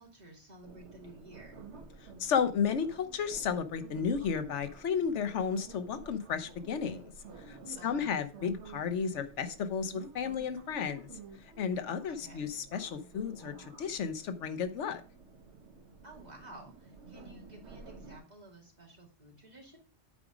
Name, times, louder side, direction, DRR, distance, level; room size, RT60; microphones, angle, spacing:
voice 1, 0.0-1.6 7.7-8.2 12.1-12.5 16.0-19.8, right 2 dB, 35° right, -1 dB, 2.5 m, -53 dB
sound 1, 0.6-18.2, right 4 dB, 75° right, 1.3 m, -51 dB
voice 2, 2.2-7.1 7.4-11.1 11.6-15.0, left 6 dB, 85° left, 11 dB, 1.1 m, -33 dB
9.0 x 4.9 x 4.9 m, 0.36 s
omnidirectional pair, 1.2 m